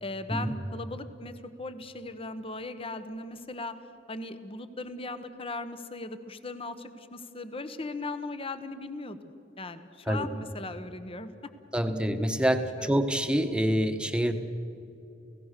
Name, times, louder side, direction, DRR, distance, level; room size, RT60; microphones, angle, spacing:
voice 1, 0.0-3.8 4.1-9.2 9.6-11.5 12.8-12.9, left 2 dB, 30° left, 11 dB, 1.1 m, -38 dB
voice 2, 11.7-14.3, equal, 5° right, 7 dB, 1.2 m, -26 dB
29.5 x 16.5 x 6.7 m, 2.7 s
head